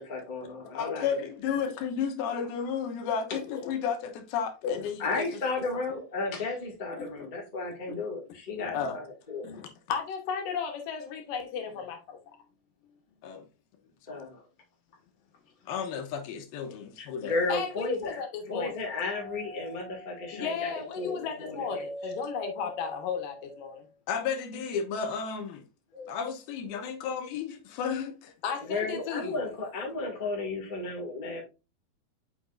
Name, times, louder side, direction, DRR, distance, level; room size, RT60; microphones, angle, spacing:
voice 1, 0.0-1.2 5.0-9.4 14.1-14.4 17.0-18.2 18.5-21.8 25.9-26.1 28.7-31.4, left 3 dB, 20° left, 1.2 m, -34 dB
voice 2, 0.7-5.2 8.7-9.0 13.2-13.5 15.7-17.4 24.1-25.6 26.1-28.3, left 7 dB, 90° left, 2.8 m, -32 dB
voice 3, 9.4-12.2 17.5-18.8 20.3-23.9 28.4-29.4, left 6 dB, 70° left, 2.6 m, -35 dB
Doorbell, 19.1-23.9, right 1 dB, 70° right, 2.8 m, -45 dB
7.1 x 5.8 x 2.5 m
omnidirectional pair, 4.3 m